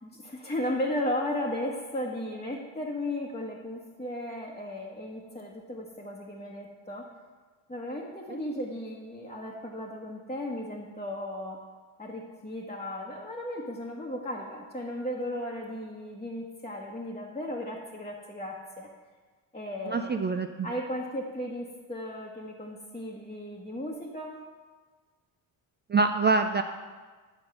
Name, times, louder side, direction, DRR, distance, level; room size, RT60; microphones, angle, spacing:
voice 1, 0.0-7.1 7.7-11.6 12.0-18.9 19.5-20.2 20.6-24.4, left 1 dB, 15° left, -4 dB, 1.2 m, -35 dB
voice 2, 19.9-20.7 25.9-26.6, right 4 dB, 25° right, 6 dB, 0.4 m, -25 dB
9.8 x 4.3 x 6.6 m, 1.4 s
supercardioid pair, 75°, 49 cm